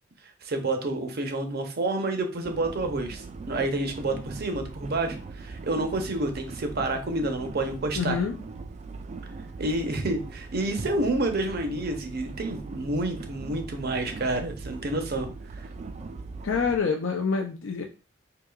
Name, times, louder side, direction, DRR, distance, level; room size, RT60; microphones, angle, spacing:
voice 1, 0.4-8.2 9.6-15.3 15.6-15.7, right 2 dB, 55° right, 6 dB, 0.7 m, -29 dB
sound 1, 2.4-16.8, right 3 dB, 35° right, 0.3 m, -40 dB
voice 2, 8.0-8.4 16.4-17.8, left 5 dB, 80° left, 3 dB, 0.5 m, -26 dB
4.7 x 2.8 x 2.3 m, 0.33 s
head